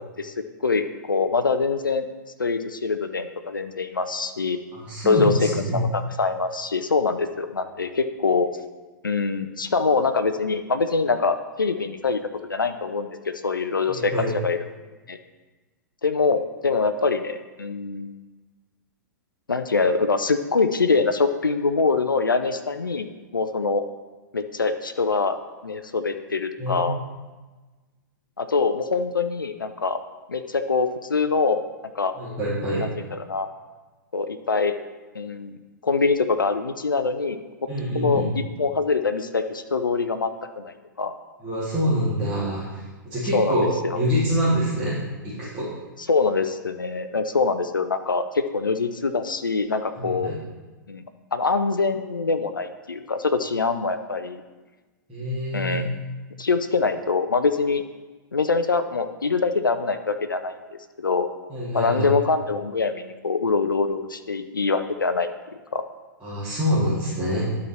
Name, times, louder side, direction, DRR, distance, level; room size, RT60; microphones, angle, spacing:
voice 1, 0.6-2.1 2.4-4.6 5.0-5.3 5.7-8.5 9.0-14.1 14.4-14.6 15.1-15.2 16.0-18.1 19.5-23.1 23.3-23.8 24.3-25.4 25.6-27.0 28.4-30.0 30.3-31.6 32.0-32.1 32.8-33.5 34.1-34.8 35.1-35.6 35.8-37.4 37.9-41.1 43.3-44.0 46.1-50.3 50.9-51.0 51.3-54.4 55.5-55.9 56.4-57.8 58.3-61.3 61.7-65.3 65.7-65.8, left 4 dB, 80° left, 9 dB, 0.5 m, -24 dB
voice 2, 4.7-5.8 13.9-14.3 26.6-26.9 32.2-32.8 37.7-38.3 41.4-43.7 43.9-45.7 50.0-50.3 55.1-55.8 61.5-62.1 66.2-67.4, equal, 10° right, -12 dB, 2.7 m, -26 dB
11.5 x 4.2 x 4.4 m, 1.3 s
figure-of-eight pair, 105°, 11 cm